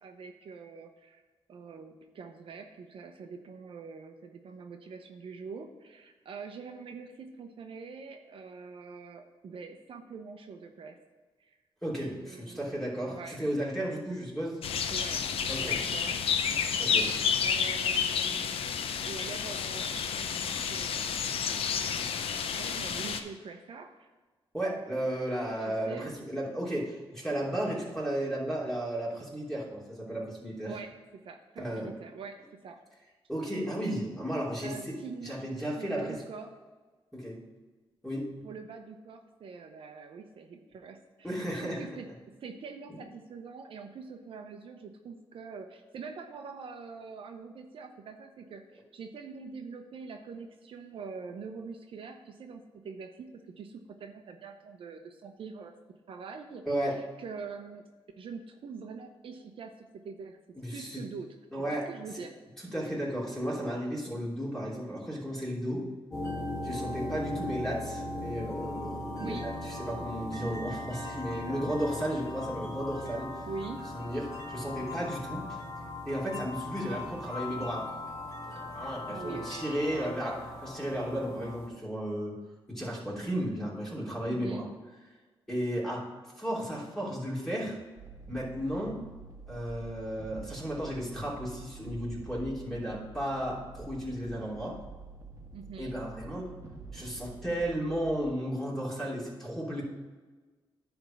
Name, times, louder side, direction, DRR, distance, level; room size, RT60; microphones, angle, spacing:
voice 1, 0.0-1.2 1.5-11.0 11.4-11.6 12.2-13.4 14.9-16.2 17.4-18.6 19.1-21.6 22.3-24.1 25.6-26.1 30.7-32.8 34.6-36.5 38.4-42.1 42.4-55.7 56.1-57.9 58.2-60.4 60.7-61.3 61.5-62.3 69.2-69.5 71.5-72.1 73.4-73.8 79.1-80.1 84.3-84.7 95.5-96.0, right 5 dB, 70° right, 5 dB, 0.7 m, -44 dB
voice 2, 11.8-14.6 15.5-15.8 16.8-17.1 24.5-30.7 31.6-31.9 33.3-34.9 35.2-36.2 37.1-37.4 38.0-38.3 41.2-41.8 42.9-43.0 56.6-57.0 60.6-61.0 61.5-61.9 62.1-62.2 62.6-65.9 66.6-73.5 73.9-75.6 76.0-77.9 78.5-80.3 80.6-82.4 82.7-84.6 85.5-87.8 88.3-89.0 89.5-94.8 95.8-96.5 96.9-99.8, equal, 5° left, -5 dB, 3.1 m, -34 dB
sound 1, 14.6-23.2, left 7 dB, 80° left, 0.6 m, -30 dB
sound 2, 66.1-81.7, left 2 dB, 35° left, 2.4 m, -39 dB
sound 3, 88.0-98.2, right 4 dB, 35° right, 1.4 m, -47 dB
10.0 x 3.5 x 7.0 m, 1.3 s
cardioid pair, 85°, 10 cm